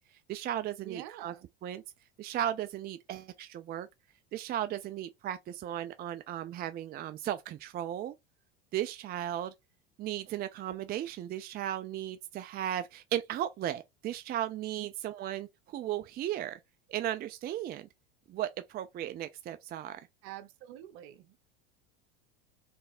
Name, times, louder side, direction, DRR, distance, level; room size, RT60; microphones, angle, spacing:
voice 1, 0.3-1.3 1.6-1.8 2.2-3.9 4.3-8.1 8.7-9.5 10.0-16.6 16.9-17.9 18.3-20.0, right 12 dB, 35° right, 0.5 m, -36 dB
voice 2, 0.8-1.4 14.8-14.9 20.2-21.3, right 13 dB, 60° right, 1.0 m, -46 dB
3.4 x 3.3 x 4.2 m
hypercardioid pair, 100°, 29 cm